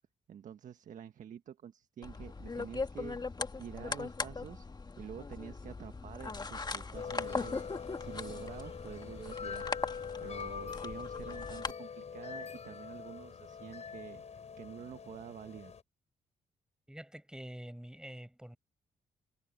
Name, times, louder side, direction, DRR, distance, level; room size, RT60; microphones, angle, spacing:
voice 1, 0.3-3.2 3.5-4.7 5.0-9.7 10.2-15.7, right 9 dB, 70° right, 1.5 m, -48 dB
sound 1, 2.0-11.7, left 4 dB, 30° left, 1.8 m, -40 dB
sound 2, 6.9-15.8, left 6 dB, 55° left, 6.4 m, -43 dB
voice 2, 16.9-18.6, right 1 dB, 5° right, 6.0 m, -46 dB
supercardioid pair, 60°, 14 cm